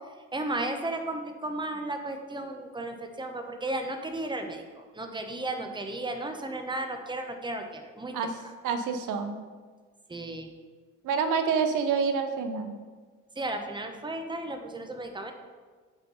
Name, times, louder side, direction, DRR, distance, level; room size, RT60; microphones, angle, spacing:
voice 1, 0.3-8.1 10.1-10.5 13.4-15.3, right 2 dB, 15° right, 5 dB, 0.9 m, -34 dB
voice 2, 8.6-9.4 11.0-12.7, right 5 dB, 85° right, 8 dB, 0.8 m, -27 dB
8.1 x 4.4 x 5.4 m, 1.5 s
cardioid pair, 90°, 30 cm